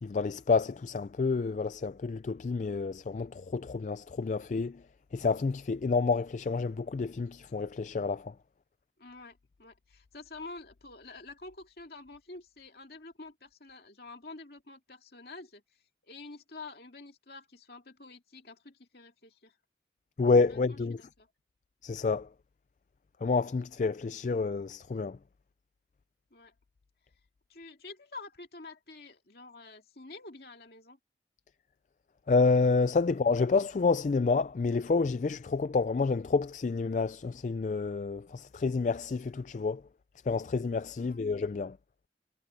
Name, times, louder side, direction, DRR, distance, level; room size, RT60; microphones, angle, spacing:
voice 1, 0.0-4.8 5.1-8.3 20.2-21.0 21.8-22.3 23.2-25.2 32.3-39.8 40.3-41.8, left 4 dB, 40° left, 0.3 m, -29 dB
voice 2, 9.0-15.6 16.0-19.5 20.5-21.3 26.3-26.5 27.5-31.0 41.0-41.3, left 3 dB, 60° left, 2.6 m, -48 dB
head